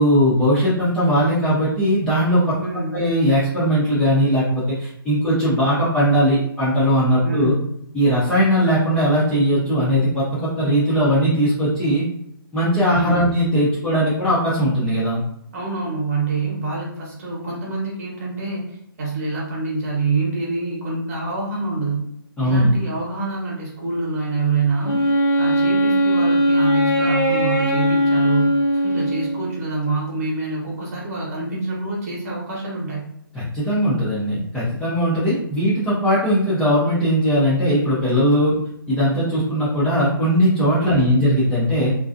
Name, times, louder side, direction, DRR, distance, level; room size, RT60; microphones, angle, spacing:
voice 1, 0.0-2.6 2.9-7.5 7.9-12.0 12.5-15.2 22.4-22.7 33.3-38.5 38.9-41.9, equal, 5° left, -11 dB, 0.5 m, -19 dB
voice 2, 2.6-3.0 7.2-7.6 12.8-13.3 15.5-18.7 19.0-22.1 22.4-25.0 25.4-33.1 40.8-41.1, right 3 dB, 40° right, -3 dB, 0.9 m, -26 dB
Wind instrument woodwind instrument, 24.8-29.6, equal, 55° left, 1.0 m, -19 dB
2.5 x 2.2 x 2.4 m, 0.74 s
hypercardioid pair, 150°, 12 cm